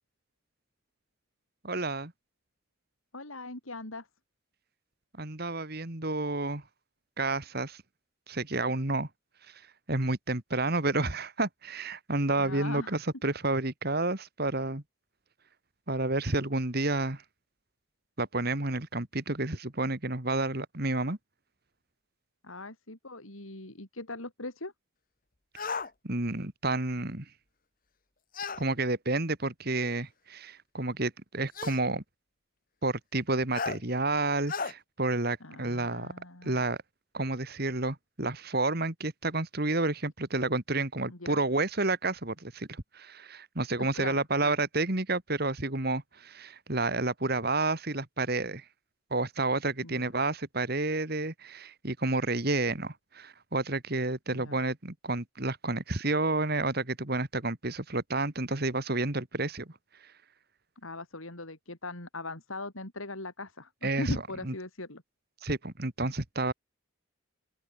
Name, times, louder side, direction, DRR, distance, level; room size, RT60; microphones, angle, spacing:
voice 1, 1.6-2.1 5.2-6.6 7.2-7.8 8.3-9.1 9.9-14.8 15.9-17.2 18.2-21.2 26.0-27.3 28.6-32.0 32.8-36.1 36.4-36.8 37.1-48.6 49.1-59.7 63.8-64.1 64.4-64.5 65.4-66.5, right 2 dB, 50° right, 2.3 m, -30 dB
voice 2, 3.1-4.1 12.4-13.0 22.4-24.7 35.4-36.6 41.1-41.4 43.8-44.5 49.8-50.1 54.3-54.6 60.8-65.0, left 2 dB, 80° left, 5.3 m, -40 dB
sound 1, 25.6-25.9 28.3-28.6 29.9-30.0 31.5-31.8 33.5-33.8 34.5-34.7, left 5 dB, 40° left, 1.5 m, -34 dB
open air
head